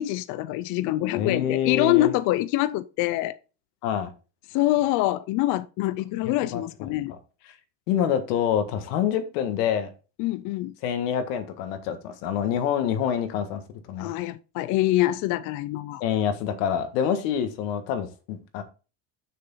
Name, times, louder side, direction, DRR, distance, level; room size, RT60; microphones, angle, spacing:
voice 1, 0.0-3.3 4.5-7.1 10.2-10.7 14.0-16.0, left 16 dB, 45° left, 0.4 m, -25 dB
voice 2, 1.2-2.1 3.8-4.1 6.2-6.6 6.9-7.0 7.9-9.9 10.8-13.6 13.9-14.1 16.0-18.6, left 9 dB, 85° left, 1.7 m, -26 dB
7.0 x 6.4 x 4.0 m
cardioid pair, 150°, 47 cm